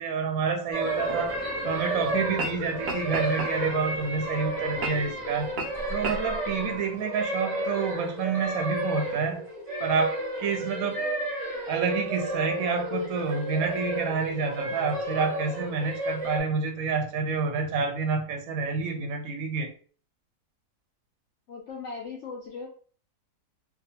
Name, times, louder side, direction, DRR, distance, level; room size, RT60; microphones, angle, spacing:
voice 1, 0.0-1.3 1.6-5.5 5.9-9.4 9.8-11.0 11.7-19.7, right 5 dB, 70° right, 0.9 m, -28 dB
sound 1, 0.7-16.4, right 1 dB, 35° right, 0.5 m, -32 dB
sound 2, 0.8-6.8, equal, 15° left, 0.9 m, -44 dB
sound 3, 1.1-1.2 2.2-2.6 2.8-3.9 4.8-5.1 5.5-5.7 6.0-6.2, right 3 dB, 90° right, 0.5 m, -33 dB
voice 2, 21.5-22.7, left 4 dB, 75° left, 0.6 m, -38 dB
2.5 x 2.3 x 2.8 m
omnidirectional pair, 1.7 m